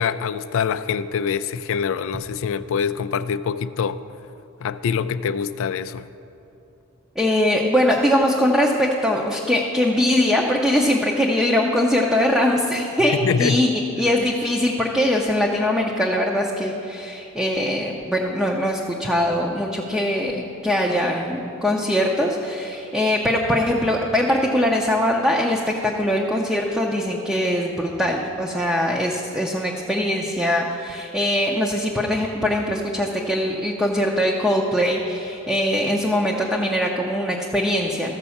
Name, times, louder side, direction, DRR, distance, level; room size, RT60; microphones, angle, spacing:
voice 1, 0.0-4.0 4.6-6.1 13.0-13.6, left 6 dB, 60° left, 0.3 m, -24 dB
voice 2, 7.2-38.1, left 1 dB, ahead, 0.6 m, -22 dB
13.5 x 5.2 x 7.1 m
head